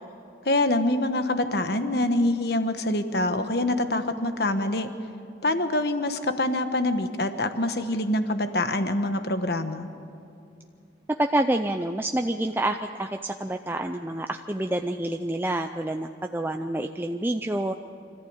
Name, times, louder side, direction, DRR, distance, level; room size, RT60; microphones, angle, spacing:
voice 1, 0.4-4.9 5.4-9.9, left 1 dB, 60° left, 8 dB, 1.2 m, -25 dB
voice 2, 11.2-17.8, right 1 dB, 10° right, 5 dB, 0.4 m, -28 dB
25.5 x 14.0 x 8.9 m, 2.5 s
head